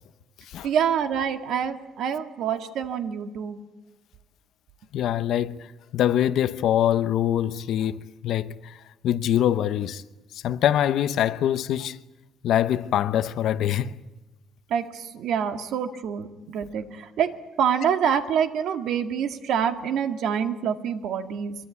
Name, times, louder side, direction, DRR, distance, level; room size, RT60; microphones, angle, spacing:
voice 1, 0.6-3.6 14.7-21.6, right 8 dB, 65° right, 2.0 m, -26 dB
voice 2, 4.9-8.8 9.0-10.0 10.3-12.0 12.4-14.0, left 11 dB, 60° left, 0.9 m, -24 dB
24.5 x 23.0 x 8.6 m
cardioid pair, 170°, 0 cm